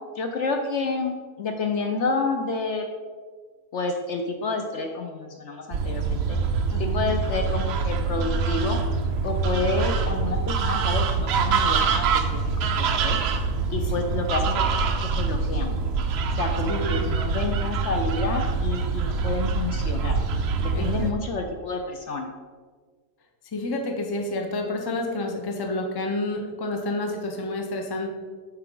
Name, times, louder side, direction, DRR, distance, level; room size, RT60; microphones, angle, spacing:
voice 1, 0.2-2.9 3.7-6.4 6.8-8.8 9.2-13.2 13.7-15.7 16.4-20.1 20.6-22.3, left 3 dB, 65° left, 4 dB, 0.7 m, -29 dB
sound 1, 5.7-21.1, right 4 dB, 75° right, 0.6 m, -25 dB
voice 2, 6.7-7.0 16.7-17.0 20.7-21.1 23.5-28.1, left 2 dB, 35° left, 3 dB, 0.4 m, -29 dB
7.5 x 4.9 x 3.7 m, 1.5 s
omnidirectional pair, 1.6 m